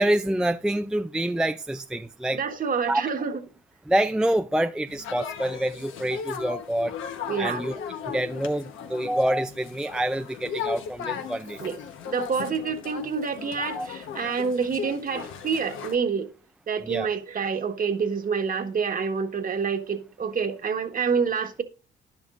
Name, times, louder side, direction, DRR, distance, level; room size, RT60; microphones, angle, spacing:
voice 1, 0.0-2.4 2.9-3.0 3.9-6.9 7.4-7.8 8.1-11.6 13.7-13.9 16.8-17.1, right 1 dB, 5° right, 0.4 m, -26 dB
voice 2, 2.3-3.3 7.3-7.6 11.6-11.8 12.1-16.3 16.7-21.6, right 5 dB, 45° right, 1.4 m, -27 dB
sound 1, 4.9-16.0, left 7 dB, 80° left, 1.1 m, -37 dB
10.5 x 10.5 x 2.5 m
cardioid pair, 90°, 20 cm